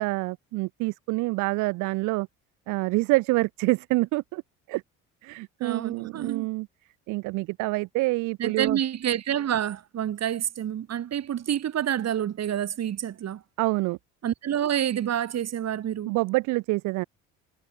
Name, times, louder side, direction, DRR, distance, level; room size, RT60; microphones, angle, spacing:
voice 1, 0.0-2.3 2.7-4.4 4.7-4.8 5.2-6.7 7.1-8.8 13.6-14.0 16.1-17.0, right 22 dB, 70° right, 0.5 m, -26 dB
voice 2, 5.6-6.5 8.4-13.4 14.2-16.1, right 10 dB, 50° right, 2.9 m, -28 dB
supercardioid pair, 80°, 32 cm